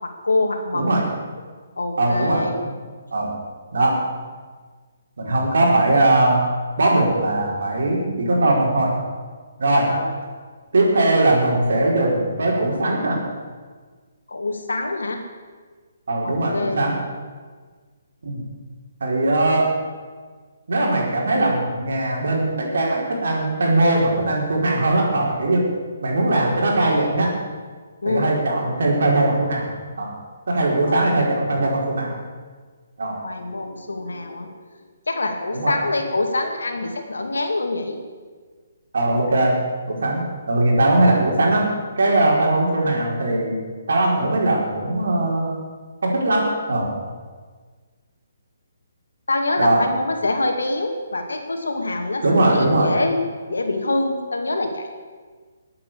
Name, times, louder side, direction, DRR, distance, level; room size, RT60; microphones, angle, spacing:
voice 1, 0.0-0.8 1.8-2.5 9.8-10.1 14.3-15.2 16.2-16.8 28.0-28.3 30.9-31.5 33.2-34.5 35.1-38.0 49.3-53.2 53.5-54.9, left 2 dB, 75° left, 4 dB, 2.5 m, -25 dB
voice 2, 0.7-1.1 2.0-2.4 3.1-3.4 3.7-4.0 5.2-6.5 6.8-8.9 9.6-9.9 10.7-13.2 16.1-17.0 18.2-18.4 19.0-19.7 20.7-25.7 26.0-27.3 28.0-29.7 30.0-30.1 30.5-32.1 33.0-33.2 35.5-35.7 38.9-39.6 39.9-41.7 42.0-43.6 43.9-45.6 46.0-46.9 49.6-49.8 52.2-52.9, right 2 dB, 65° right, -1 dB, 4.7 m, -20 dB
21.0 x 8.7 x 7.0 m, 1.5 s
figure-of-eight pair, 135°, 0 cm